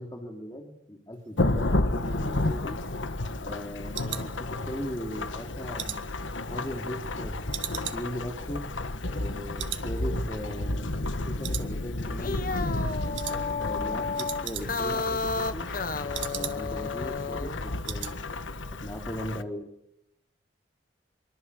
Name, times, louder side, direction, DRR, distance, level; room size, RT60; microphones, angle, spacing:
voice 1, 0.0-2.8 3.4-6.1 6.5-8.6 9.0-13.1 13.6-15.7 16.3-18.3 18.8-19.7, equal, 20° left, 3 dB, 3.1 m, -38 dB
Thunderstorm / Rain, 1.4-19.4, left 2 dB, 85° left, 1.5 m, -32 dB
sound 1, 2.2-5.0 5.4-7.1 7.5-9.3 9.6-9.9 10.2-10.3 10.8-11.2 11.4-12.2 12.5-12.8 13.1-13.4 13.7-13.8 14.0-15.0 15.3-16.9 17.2-17.3 17.6-18.2 18.5-18.7 19.0-19.1, right 13 dB, 80° right, 1.9 m, -39 dB
sound 2, 12.0-17.5, left 4 dB, 45° left, 1.3 m, -32 dB
25.5 x 23.5 x 8.4 m, 0.78 s
head